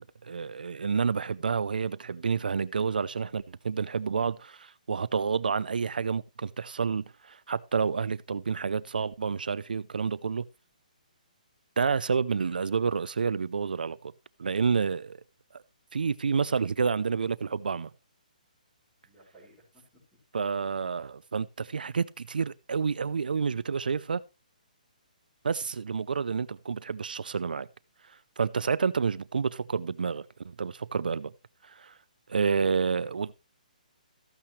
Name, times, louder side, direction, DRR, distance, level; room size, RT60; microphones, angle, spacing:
voice 1, 0.0-10.4 11.8-14.1 14.4-15.2 15.9-17.9 20.3-24.2 25.4-27.7 28.4-31.3 31.7-31.9 32.3-33.3, right 5 dB, 85° right, 0.5 m, -29 dB
voice 2, 19.0-20.2, right 1 dB, 5° right, 5.4 m, -59 dB
14.0 x 8.7 x 3.2 m
hypercardioid pair, 170°, 5 cm